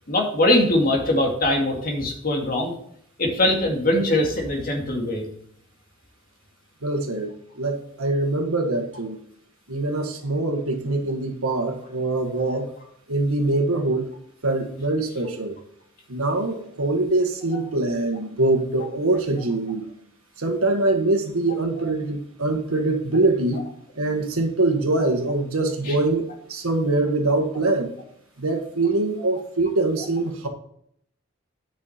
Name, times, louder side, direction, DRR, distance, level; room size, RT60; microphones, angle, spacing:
voice 1, 0.1-2.7 3.2-5.2 17.5-17.6 25.9-26.0, left 1 dB, 45° left, 1 dB, 2.2 m, -22 dB
voice 2, 6.8-9.2 9.7-12.7 13.1-14.1 14.4-15.5 16.1-19.8 20.4-23.6 24.0-27.9 28.4-30.5, right 2 dB, 85° right, 4 dB, 1.7 m, -23 dB
10.0 x 6.1 x 4.2 m, 0.68 s
head